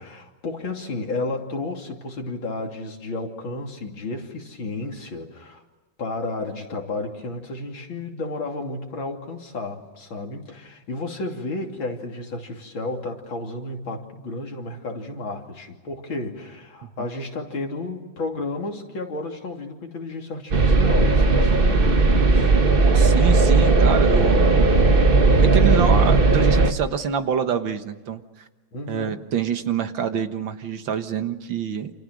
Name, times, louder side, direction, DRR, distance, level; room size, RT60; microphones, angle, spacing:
voice 1, 0.0-5.6 6.0-22.6 28.7-29.2, left 2 dB, 90° left, 2 dB, 3.7 m, -32 dB
sound 1, 20.5-26.7, right 3 dB, 30° right, 1.4 m, -16 dB
voice 2, 22.9-24.9 25.4-28.2 28.9-31.9, right 7 dB, 75° right, 8 dB, 2.2 m, -26 dB
28.5 x 28.5 x 6.3 m, 1.2 s
omnidirectional pair, 2.1 m